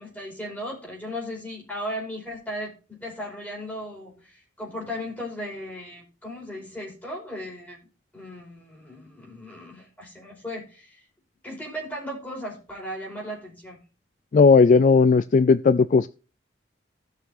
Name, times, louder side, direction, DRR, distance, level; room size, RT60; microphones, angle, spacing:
voice 1, 0.0-7.8 8.1-11.0 11.4-13.8, equal, 10° left, 4.9 m, -36 dB
voice 2, 14.3-16.1, left 4 dB, 40° left, 0.3 m, -16 dB
16.5 x 6.0 x 2.7 m
head